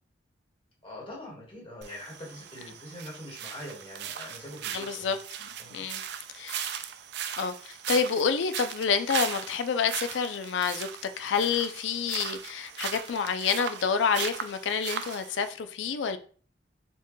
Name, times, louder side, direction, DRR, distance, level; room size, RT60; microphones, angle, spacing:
voice 1, 0.8-5.1 5.6-5.8, left 1 dB, 30° left, 1.4 m, -43 dB
sound 1, 1.8-15.5, right 9 dB, 60° right, 0.3 m, -38 dB
voice 2, 4.7-6.0 6.3-6.8 7.4-10.9 11.2-16.2, left 6 dB, 80° left, 0.4 m, -28 dB
4.2 x 2.2 x 3.1 m
head